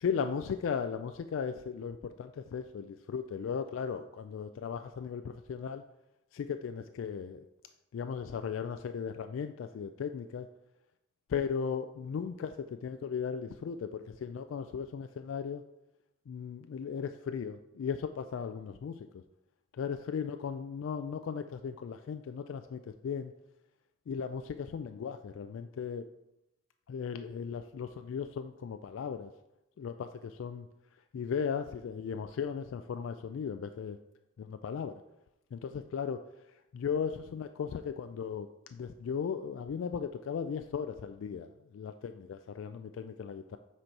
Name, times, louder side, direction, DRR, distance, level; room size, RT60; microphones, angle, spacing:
voice 1, 0.0-5.8 6.3-7.5 7.9-10.5 11.3-15.6 16.3-19.2 19.7-23.3 24.1-26.1 26.9-29.3 29.8-30.7 31.1-34.0 34.4-35.0 35.5-36.2 36.7-41.5 41.7-43.6, left 6 dB, 80° left, 9 dB, 0.3 m, -36 dB
7.7 x 4.4 x 4.6 m, 0.92 s
head